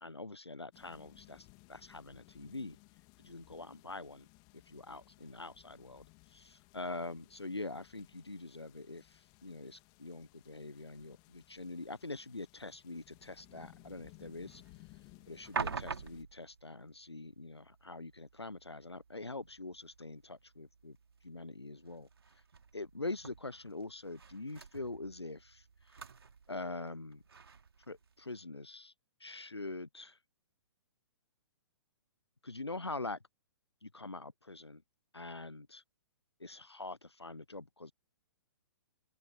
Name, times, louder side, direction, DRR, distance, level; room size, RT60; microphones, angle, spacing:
voice 1, 0.0-2.8 3.2-4.3 4.7-6.0 6.3-14.6 15.3-21.0 21.2-22.1 22.7-25.6 26.5-27.2 27.9-28.9 29.2-30.2 32.4-33.2 33.8-34.8 35.1-35.8 36.4-37.9, left 2 dB, 85° left, 0.8 m, -44 dB
sound 1, 0.7-16.2, left 31 dB, 30° left, 2.2 m, -61 dB
sound 2, 13.1-28.4, right 6 dB, 65° right, 2.3 m, -48 dB
open air
figure-of-eight pair, 120°, 14 cm